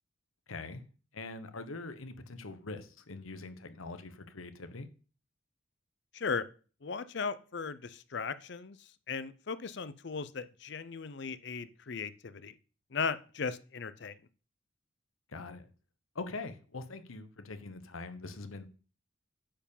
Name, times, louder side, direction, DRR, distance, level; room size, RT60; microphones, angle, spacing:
voice 1, 0.5-0.8 1.1-4.9 15.3-15.7 16.1-18.7, left 3 dB, 85° left, 1.1 m, -43 dB
voice 2, 6.1-6.5 6.8-12.5 12.9-14.2, left 5 dB, 55° left, 0.6 m, -37 dB
10.0 x 4.6 x 7.1 m
head